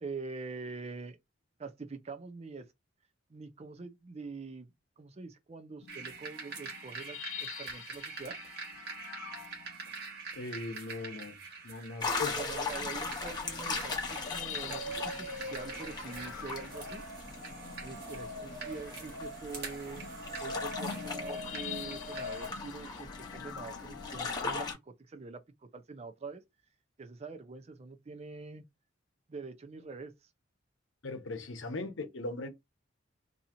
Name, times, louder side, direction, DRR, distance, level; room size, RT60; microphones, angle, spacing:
voice 1, 0.0-1.2 1.6-2.7 3.3-8.4 12.3-17.1 17.8-20.1 20.4-26.4 27.0-28.7 29.3-30.3, right 4 dB, 35° right, 0.5 m, -45 dB
sound 1, 5.8-10.3 11.3-11.4 12.6-24.7, left 8 dB, 85° left, 0.4 m, -46 dB
sound 2, 5.9-22.5, right 2 dB, 55° right, 1.4 m, -43 dB
voice 2, 10.4-11.4 11.6-12.4 31.0-32.5, left 3 dB, 70° left, 0.8 m, -39 dB
sound 3, 12.0-24.7, left 3 dB, 20° left, 0.9 m, -39 dB
2.9 x 2.7 x 3.6 m
head